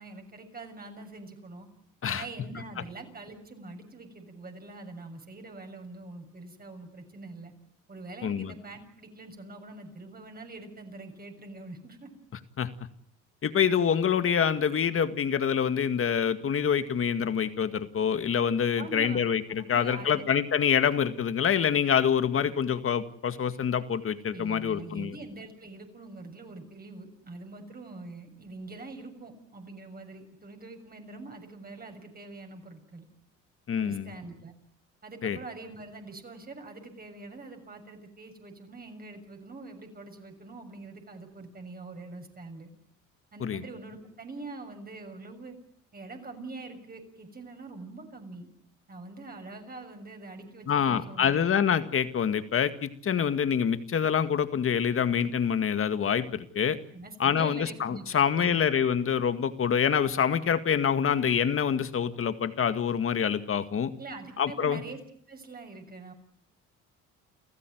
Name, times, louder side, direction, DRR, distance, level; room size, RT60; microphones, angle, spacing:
voice 1, 0.0-1.7 2.0-7.5 7.9-12.1 18.8-19.2 19.6-20.2 24.3-33.1 33.8-34.5 35.0-42.7 43.3-45.6 45.9-48.5 48.9-51.4 56.9-58.0 58.3-58.6 64.0-65.0 65.3-66.1, right 3 dB, 30° right, 5 dB, 6.7 m, -44 dB
voice 2, 8.2-8.5 12.6-12.7 13.4-25.2 33.7-34.1 35.2-35.4 43.4-43.6 50.7-56.8 57.2-63.9 64.4-64.8, left 7 dB, 45° left, 11 dB, 2.0 m, -26 dB
30.0 x 15.0 x 9.4 m, 0.64 s
cardioid pair, 100°, 31 cm